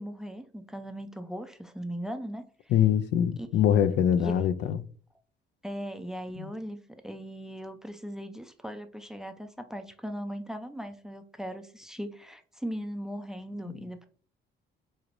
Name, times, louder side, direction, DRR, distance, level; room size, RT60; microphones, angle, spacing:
voice 1, 0.0-2.4 3.4-3.5 3.9-4.5 5.6-6.8 7.0-14.1, equal, 5° right, 0.4 m, -38 dB
voice 2, 2.7-4.8 6.4-6.5 13.7-13.8, left 9 dB, 75° left, 0.4 m, -24 dB
4.1 x 3.1 x 2.5 m
cardioid pair, 120°, 19 cm